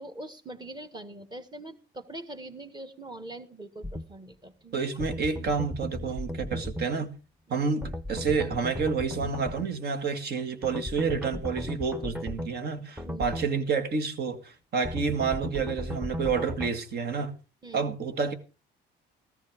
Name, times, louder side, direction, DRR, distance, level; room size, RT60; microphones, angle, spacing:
voice 1, 0.0-4.8 7.5-7.6 13.1-13.3 17.6-17.9, right 1 dB, 20° right, 1.7 m, -43 dB
sound 1, 3.8-4.1 5.0-6.9 7.8-9.7 10.6-12.5 13.0-13.5 14.8-16.7, left 1 dB, 5° right, 0.9 m, -36 dB
voice 2, 4.7-7.1 7.5-17.3 17.7-18.3, right 5 dB, 55° right, 1.9 m, -29 dB
14.0 x 14.0 x 3.6 m
cardioid pair, 95°, 19 cm